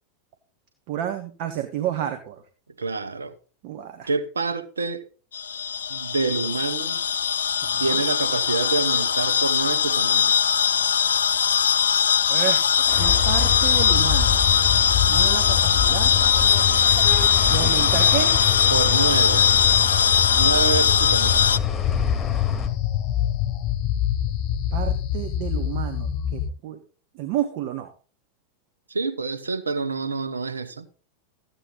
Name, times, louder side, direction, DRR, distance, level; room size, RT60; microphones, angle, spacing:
voice 1, 0.9-2.4 3.6-4.1 7.6-8.0 12.3-12.6 13.0-14.4 15.1-16.1 17.5-18.4 24.7-26.8 27.1-27.9, right 11 dB, 55° right, 1.6 m, -30 dB
voice 2, 2.8-3.4 4.1-5.0 5.9-7.0 7.8-10.4 18.7-19.5 20.3-21.5 28.9-30.9, right 4 dB, 85° right, 1.1 m, -27 dB
sound 1, 5.3-21.6, left 8 dB, 80° left, 0.5 m, -20 dB
sound 2, 12.9-26.5, left 10 dB, 40° left, 1.3 m, -26 dB
sound 3, 12.9-22.7, left 4 dB, 20° left, 2.7 m, -31 dB
14.5 x 8.9 x 3.9 m
hypercardioid pair, 95°, 0 cm